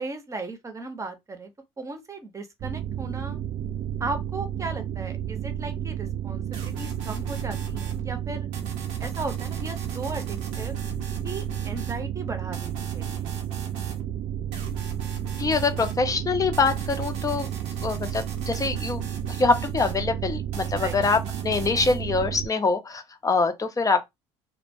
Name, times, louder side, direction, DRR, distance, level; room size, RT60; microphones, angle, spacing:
voice 1, 0.0-3.4 4.0-8.5 9.0-10.8 11.2-13.3 20.7-21.0, right 3 dB, 20° right, 0.8 m, -36 dB
sound 1, 2.6-22.5, right 10 dB, 45° right, 0.4 m, -32 dB
sound 2, 6.5-8.0 8.5-12.0 12.5-14.0 14.5-16.0 16.5-20.0 20.5-22.0, right 4 dB, 75° right, 0.7 m, -41 dB
voice 2, 15.4-17.5 17.8-19.0 19.3-24.1, left 4 dB, 25° left, 0.6 m, -24 dB
2.2 x 2.1 x 2.6 m
hypercardioid pair, 60°, 14 cm